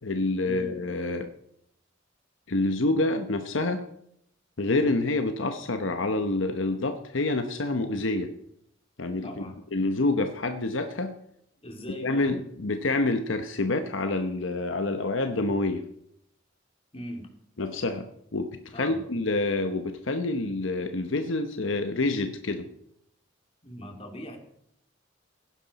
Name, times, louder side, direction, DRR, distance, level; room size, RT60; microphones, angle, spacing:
voice 1, 0.0-1.3 2.5-3.9 4.6-8.3 9.0-9.4 9.7-11.1 11.9-15.8 17.6-22.7, left 2 dB, 75° left, 7 dB, 1.0 m, -27 dB
voice 2, 9.2-9.6 11.6-12.3 16.9-17.2 18.7-19.0 23.6-24.4, equal, 30° left, 3 dB, 2.6 m, -40 dB
17.5 x 10.5 x 4.2 m, 0.72 s
head